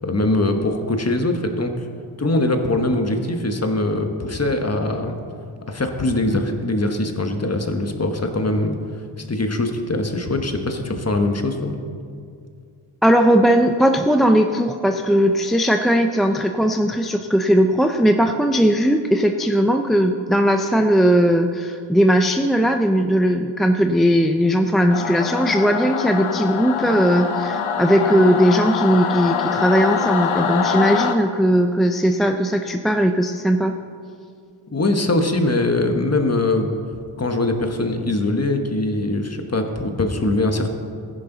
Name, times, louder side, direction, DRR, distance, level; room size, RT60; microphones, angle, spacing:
voice 1, 0.0-1.7 2.2-5.2 5.7-8.8 9.2-11.8 34.7-36.8 37.2-40.7, left 2 dB, 30° left, 5 dB, 1.3 m, -22 dB
voice 2, 13.0-33.7, equal, ahead, 5 dB, 0.5 m, -18 dB
Singing / Musical instrument, 24.9-31.1, left 7 dB, 80° left, 0.9 m, -24 dB
14.5 x 10.5 x 4.0 m, 2.3 s
wide cardioid pair, 70°, 50 cm